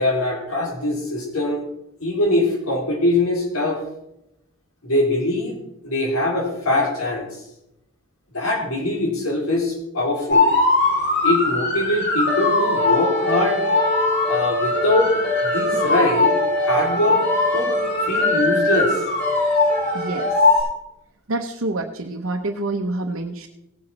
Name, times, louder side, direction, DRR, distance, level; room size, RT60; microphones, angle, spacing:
voice 1, 0.0-1.6 2.0-3.8 4.8-5.6 5.8-7.3 8.3-10.5 11.2-13.6 14.3-17.2 17.5-17.7 18.1-19.0, left 1 dB, 80° left, -1 dB, 3.4 m, -22 dB
sound 1, 10.3-20.6, left 2 dB, 50° left, 4.7 m, -20 dB
voice 2, 19.9-20.6 21.3-23.5, right 2 dB, 65° right, 2 dB, 0.9 m, -27 dB
17.5 x 7.9 x 4.2 m, 0.86 s
head